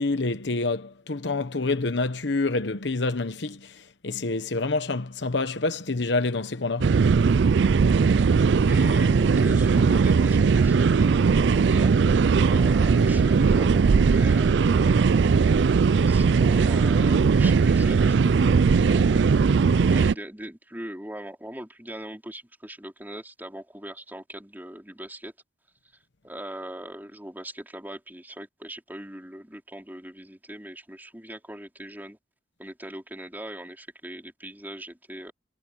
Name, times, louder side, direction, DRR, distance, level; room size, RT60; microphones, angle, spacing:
voice 1, 0.0-7.0, left 3 dB, 70° left, 1.1 m, -27 dB
sound 1, 6.8-20.1, right 5 dB, 70° right, 0.4 m, -19 dB
voice 2, 8.5-11.9 12.5-15.3 15.9-18.5 18.9-19.3 19.9-25.3 26.2-32.2 32.6-35.3, right 1 dB, 10° right, 4.4 m, -40 dB
head